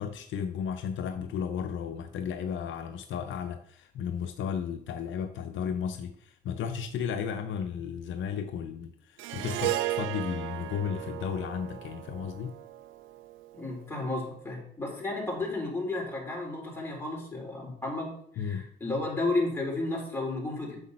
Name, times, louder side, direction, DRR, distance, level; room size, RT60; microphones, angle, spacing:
voice 1, 0.0-12.6 18.4-18.7, left 7 dB, 75° left, 7 dB, 0.7 m, -34 dB
Harp, 9.2-13.6, right 14 dB, 90° right, 0.5 m, -35 dB
voice 2, 13.5-20.8, left 2 dB, 10° left, -3 dB, 4.0 m, -33 dB
8.2 x 6.8 x 4.3 m, 0.65 s
cardioid pair, 90°, 20 cm